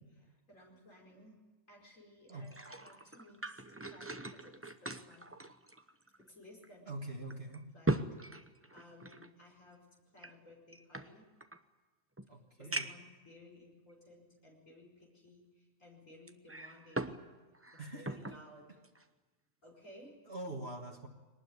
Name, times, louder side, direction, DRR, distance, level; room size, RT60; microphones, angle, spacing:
voice 1, 0.2-1.4 1.7-4.6 4.8-5.3 6.2-7.2 7.7-9.9 10.1-11.3 12.6-17.2 17.7-18.8 19.6-20.2, left 1 dB, 65° left, -1 dB, 5.4 m, -58 dB
sound 1, 2.3-6.3 6.6-6.7 7.3-9.3 10.2-11.6 12.2-12.3 12.7-13.1 13.9-14.0 16.3-17.2 17.5-18.4 18.8-19.0, right 2 dB, 10° right, 0.7 m, -40 dB
voice 2, 6.9-7.7 12.3-12.9 17.8-18.2 20.3-21.1, right 2 dB, 45° right, 1 dB, 1.9 m, -44 dB
22.0 x 19.5 x 9.7 m, 1.3 s
omnidirectional pair, 1.4 m